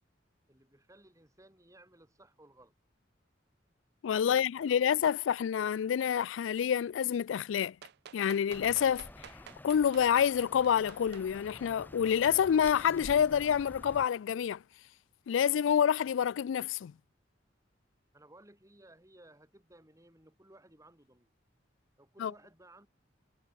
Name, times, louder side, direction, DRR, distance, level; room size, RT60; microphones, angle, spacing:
voice 1, 0.5-2.7 4.2-4.9 18.1-21.3 22.0-22.9, right 1 dB, 15° right, 5.4 m, -58 dB
voice 2, 4.0-7.8 8.1-9.3 9.6-14.6 15.3-16.9 22.2-22.3, left 8 dB, 85° left, 0.3 m, -28 dB
sound 1, 7.6-11.3 12.2-12.3, right 9 dB, 60° right, 0.3 m, -51 dB
sound 2, 8.5-14.1, left 1 dB, 10° left, 0.6 m, -50 dB
head